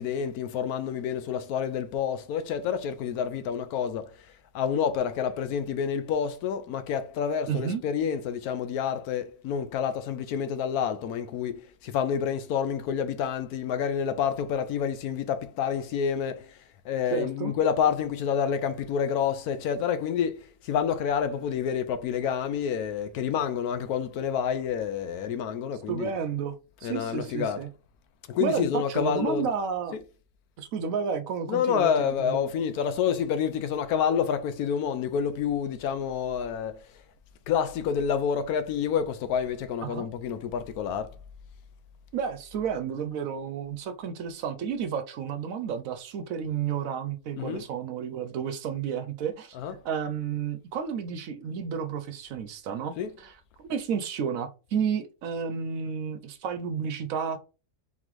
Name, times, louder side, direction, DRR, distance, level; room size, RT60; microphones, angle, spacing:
voice 1, 0.0-4.1 4.5-16.6 16.8-26.1 26.8-27.7 28.3-29.5 29.9-30.0 31.5-36.8 37.5-41.1 47.4-47.6 49.5-49.8 53.0-53.2, left 7 dB, 75° left, 1.1 m, -28 dB
voice 2, 7.5-7.8 17.1-17.5 25.9-26.6 26.8-27.7 28.4-30.0 30.6-32.5 39.8-40.1 42.1-49.6 49.8-53.3 53.6-57.4, right 7 dB, 70° right, 0.9 m, -31 dB
3.9 x 3.8 x 3.1 m
omnidirectional pair, 1.6 m